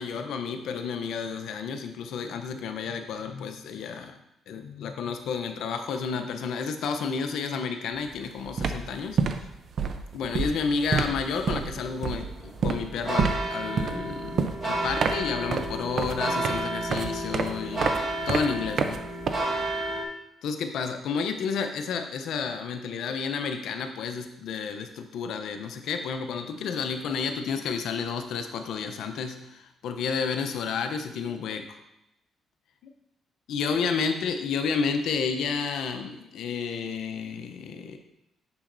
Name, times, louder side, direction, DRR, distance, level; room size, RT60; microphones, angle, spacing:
voice 1, 0.0-4.1 4.5-9.2 10.1-18.0 18.3-19.0 20.4-31.7 33.5-38.0, left 5 dB, 80° left, 6 dB, 0.6 m, -31 dB
sound 1, 8.0-8.2 8.4-19.9, right 5 dB, 60° right, 0.5 m, -29 dB
sound 2, 11.0-20.0, right 1 dB, 40° right, 1.5 m, -32 dB
7.1 x 6.3 x 2.6 m, 0.86 s
cardioid pair, 90°, 0 cm